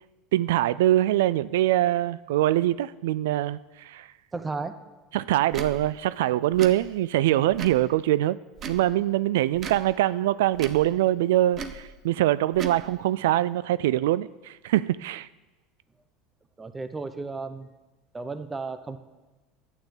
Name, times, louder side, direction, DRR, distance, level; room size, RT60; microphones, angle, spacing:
voice 1, 0.3-4.1 5.1-8.4 8.6-15.3, right 14 dB, 90° right, 17 dB, 0.3 m, -23 dB
voice 2, 4.3-4.7 16.6-17.7 18.1-19.0, right 4 dB, 15° right, 10 dB, 0.9 m, -33 dB
Tick / Tick-tock, 5.5-5.7 6.5-6.8 7.5-7.8 8.5-8.9 9.5-9.8 10.5-10.8 11.5-11.8 12.5-12.8, right 6 dB, 35° right, 1.1 m, -36 dB
11.0 x 9.2 x 7.2 m, 1.2 s
supercardioid pair, 130°, 0 cm